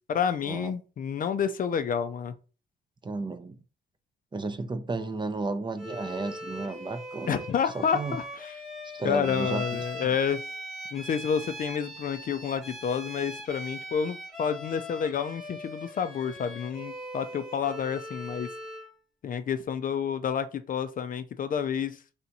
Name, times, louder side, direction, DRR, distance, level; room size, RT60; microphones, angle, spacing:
voice 1, 0.1-2.3 7.3-8.6 9.0-10.4 10.9-18.5 19.2-22.0, left 7 dB, 45° left, 0.4 m, -29 dB
voice 2, 3.0-3.6 4.3-7.4 7.7-8.2 8.9-10.1, right 3 dB, 25° right, 0.5 m, -33 dB
Bowed string instrument, 5.8-19.0, equal, ahead, 1.0 m, -40 dB
3.4 x 2.8 x 4.0 m
cardioid pair, 90°, 20 cm